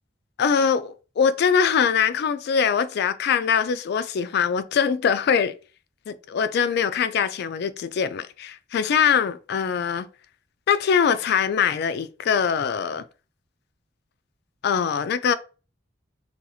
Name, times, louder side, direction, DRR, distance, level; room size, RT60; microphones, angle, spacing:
voice 1, 0.4-5.5 6.1-10.1 10.7-13.0 14.6-15.3, left 7 dB, 60° left, 0.3 m, -22 dB
2.8 x 2.3 x 4.0 m
head